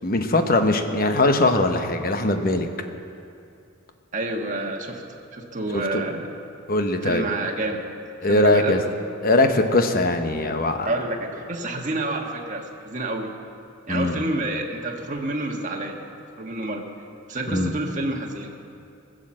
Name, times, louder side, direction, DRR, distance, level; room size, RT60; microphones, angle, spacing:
voice 1, 0.0-2.7 5.7-5.8 6.7-7.3 8.2-8.8 9.2-10.9 13.9-14.2 17.5-17.7, left 2 dB, 40° left, 6 dB, 1.0 m, -21 dB
voice 2, 4.1-5.0 5.3-6.3 7.0-7.8 8.2-8.9 10.8-13.3 13.9-16.0 16.4-16.8 17.3-18.6, right 2 dB, 35° right, 1 dB, 1.4 m, -29 dB
20.0 x 7.7 x 7.6 m, 2.6 s
head